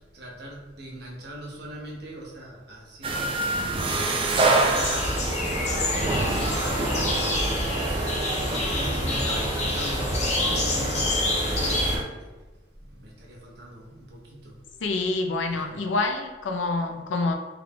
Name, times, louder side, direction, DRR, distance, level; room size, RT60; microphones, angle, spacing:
voice 1, 0.1-10.2 10.7-12.2 12.8-14.5 15.5-15.7, right 1 dB, 60° right, -2 dB, 0.9 m, -41 dB
sound 1, 3.0-12.0, right 2 dB, 30° right, 0.3 m, -27 dB
sound 2, 4.8-12.0, left 2 dB, 35° left, 0.5 m, -27 dB
voice 2, 14.8-17.3, left 3 dB, 80° left, 4 dB, 0.5 m, -27 dB
3.6 x 3.2 x 2.3 m, 1.2 s
head